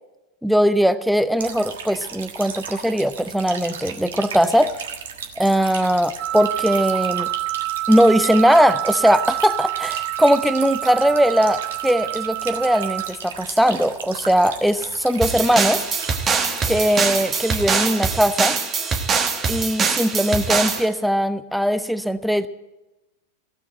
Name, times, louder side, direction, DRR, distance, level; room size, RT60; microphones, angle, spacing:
voice 1, 0.4-4.7 5.4-7.3 7.9-15.8 16.7-18.6 19.5-22.5, equal, ahead, 12 dB, 0.6 m, -19 dB
sound 1, 1.4-17.9, right 7 dB, 60° right, 1.4 m, -36 dB
Wind instrument woodwind instrument, 6.2-13.1, right 19 dB, 40° right, 2.6 m, -27 dB
sound 2, 15.2-20.8, right 5 dB, 25° right, 1.4 m, -23 dB
15.5 x 7.2 x 8.9 m, 1.0 s
figure-of-eight pair, 90°, 0 cm